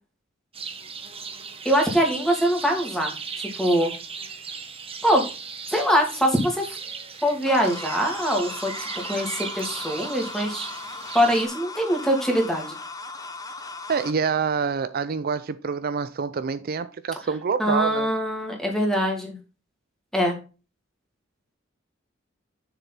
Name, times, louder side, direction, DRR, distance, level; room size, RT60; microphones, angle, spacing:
sound 1, 0.5-11.5, right 5 dB, 30° right, 1.3 m, -37 dB
voice 1, 1.6-3.9 5.0-5.3 5.7-6.8 7.2-10.7 11.1-12.7 17.6-19.3 20.1-20.4, equal, 5° left, 2.5 m, -23 dB
sound 2, 7.5-14.1, left 3 dB, 20° left, 0.9 m, -38 dB
voice 2, 13.9-18.1, right 5 dB, 50° right, 0.5 m, -26 dB
7.1 x 6.7 x 4.0 m
head